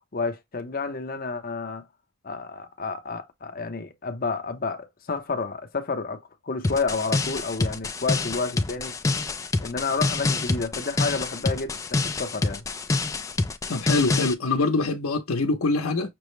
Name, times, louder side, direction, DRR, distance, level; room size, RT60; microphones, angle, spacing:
voice 1, 0.1-1.9 2.2-9.2 9.6-12.6, left 4 dB, 45° left, 0.7 m, -30 dB
sound 1, 6.6-14.3, left 3 dB, 15° left, 0.3 m, -27 dB
voice 2, 13.7-16.1, left 3 dB, 90° left, 0.8 m, -24 dB
6.0 x 2.1 x 3.2 m
head